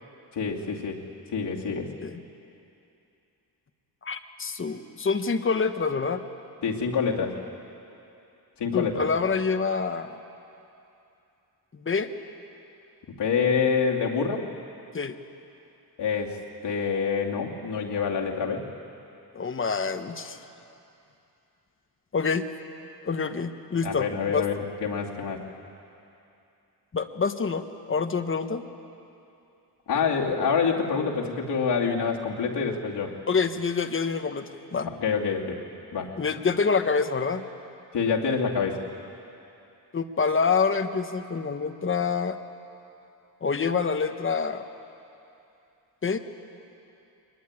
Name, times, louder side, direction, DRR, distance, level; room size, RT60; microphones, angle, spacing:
voice 1, 0.3-1.0 1.3-1.9 6.6-7.4 8.6-9.1 13.1-14.5 16.0-16.4 16.6-18.7 23.8-25.4 29.9-33.2 34.8-35.6 35.9-36.1 37.9-38.9, left 5 dB, 85° left, -1 dB, 2.7 m, -26 dB
voice 2, 4.0-6.2 8.7-10.1 11.8-12.1 14.9-15.1 19.3-20.4 22.1-22.4 23.0-24.4 26.9-28.6 33.3-34.9 36.2-37.4 39.9-42.4 43.4-44.6 46.0-46.2, left 5 dB, 30° left, 8 dB, 1.1 m, -26 dB
23.0 x 20.5 x 9.7 m, 2.8 s
wide cardioid pair, 135°, 40 cm